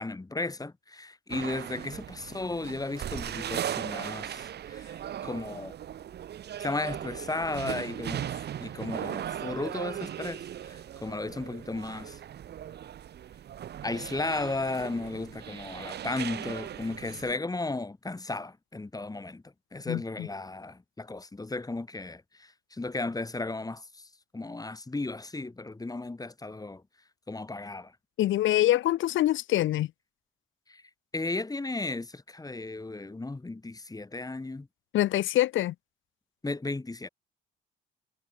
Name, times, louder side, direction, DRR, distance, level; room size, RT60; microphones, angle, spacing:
voice 1, 0.0-5.7 6.6-12.2 13.8-19.4 19.7-24.1 24.3-26.8 27.3-27.9 30.7-30.8 31.1-34.7 36.4-37.1, left 2 dB, 20° left, 5.3 m, -35 dB
sound 1, 1.3-17.4, right 10 dB, 55° right, 0.9 m, -38 dB
voice 2, 19.9-20.3 28.2-29.9 34.9-35.7, left 14 dB, 80° left, 1.3 m, -25 dB
cardioid pair, 90°, 20 cm